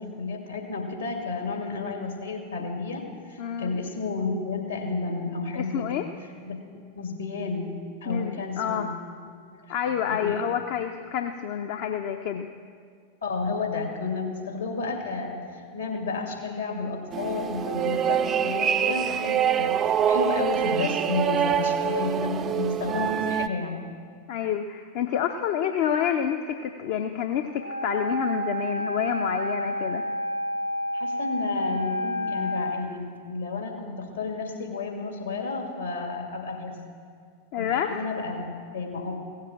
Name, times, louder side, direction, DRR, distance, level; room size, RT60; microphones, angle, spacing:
voice 1, 0.0-5.9 6.4-6.6 7.0-7.7 8.0-8.8 9.3-9.7 10.1-10.5 13.2-23.8 30.9-36.8 37.6-39.2, left 4 dB, 75° left, 2 dB, 2.3 m, -31 dB
voice 2, 3.4-3.7 5.6-6.0 8.1-8.9 9.7-12.5 24.3-30.1 37.5-37.9, left 9 dB, 50° left, 5 dB, 0.6 m, -28 dB
sound 1, 17.1-23.5, right 9 dB, 25° right, 0.4 m, -25 dB
Wind instrument woodwind instrument, 27.6-32.9, equal, 85° right, 0.6 m, -30 dB
16.5 x 7.5 x 7.5 m, 2.1 s
figure-of-eight pair, 90°, 0 cm